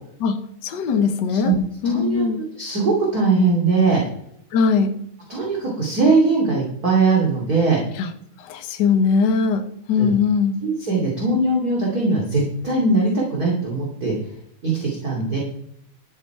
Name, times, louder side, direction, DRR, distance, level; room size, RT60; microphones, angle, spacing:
voice 1, 0.2-1.5 1.8-2.4 4.5-5.0 8.0-8.1 8.4-10.6, left 5 dB, 85° left, 7 dB, 0.9 m, -20 dB
voice 2, 1.8-2.3 2.6-4.0 5.3-7.8 10.0-10.1 10.6-14.1 14.6-15.4, right 3 dB, 30° right, -3 dB, 3.0 m, -20 dB
13.0 x 8.7 x 4.6 m, 0.72 s
omnidirectional pair, 3.6 m